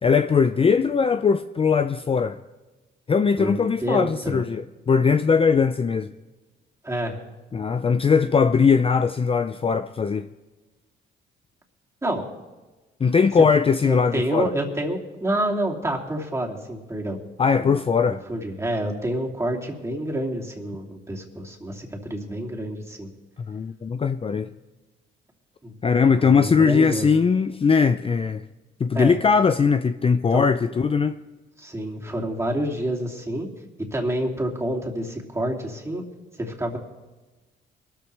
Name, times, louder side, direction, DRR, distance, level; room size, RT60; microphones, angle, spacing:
voice 1, 0.0-2.4 3.1-6.1 7.5-10.3 13.0-14.5 17.4-18.2 23.5-24.5 25.8-28.4 28.8-31.2, left 5 dB, 30° left, 0.5 m, -20 dB
voice 2, 3.4-4.4 6.8-7.2 12.0-12.3 13.4-13.5 13.8-17.2 17.6-23.1 25.6-25.7 26.2-27.1 28.9-29.1 30.3-30.5 31.6-33.5 33.9-36.0 36.4-36.8, right 1 dB, 15° right, 2.8 m, -28 dB
22.5 x 13.5 x 3.4 m
cardioid pair, 90°, 20 cm